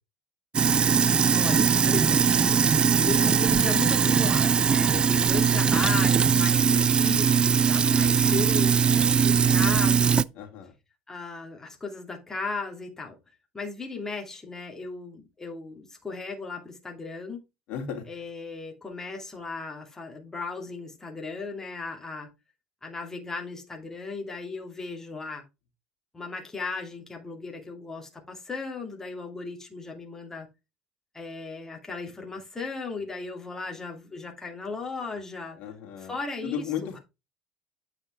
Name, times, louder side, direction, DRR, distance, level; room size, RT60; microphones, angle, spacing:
Sink (filling or washing), 0.5-10.2, right 7 dB, 30° right, 0.3 m, -21 dB
voice 1, 1.3-2.3 3.0-10.3 11.1-13.2 13.5-17.4 18.0-22.3 22.8-25.4 26.1-30.5 31.1-35.6 36.0-37.0, left 3 dB, 15° left, 2.6 m, -36 dB
voice 2, 10.4-10.7 17.7-18.0 35.6-36.1 36.4-37.0, left 8 dB, 60° left, 2.8 m, -34 dB
9.0 x 5.2 x 3.3 m
supercardioid pair, 90°, 3 cm